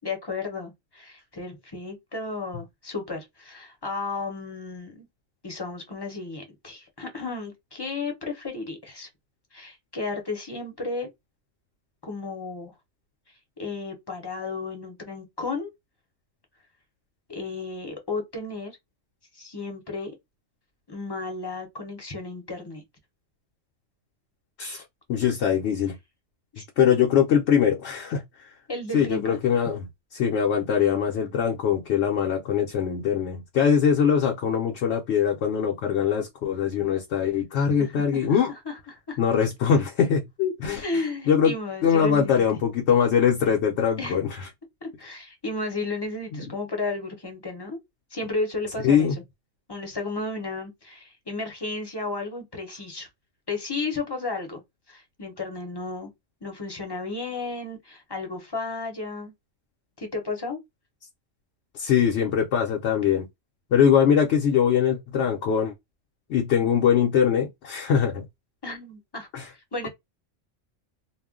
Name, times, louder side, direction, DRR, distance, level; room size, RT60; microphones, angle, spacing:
voice 1, 0.0-5.1 5.4-9.1 9.5-11.1 12.0-12.7 13.6-15.7 17.3-18.8 19.3-20.1 20.9-22.8 26.5-26.6 28.7-29.4 37.8-39.2 40.7-42.6 44.0-44.2 44.8-47.8 48.1-49.2 49.7-53.1 53.5-54.6 54.9-56.1 56.4-59.3 60.0-60.6 68.6-69.9, left 3 dB, 25° left, 0.7 m, -33 dB
voice 2, 25.1-25.9 26.8-28.2 28.9-29.8 30.1-38.5 39.2-40.8 41.3-41.5 41.8-44.3 46.3-46.4 48.8-49.2 61.7-63.3 63.7-65.7 66.3-68.3 69.3-69.5, left 7 dB, 65° left, 0.8 m, -22 dB
2.3 x 2.1 x 3.6 m
omnidirectional pair, 1.3 m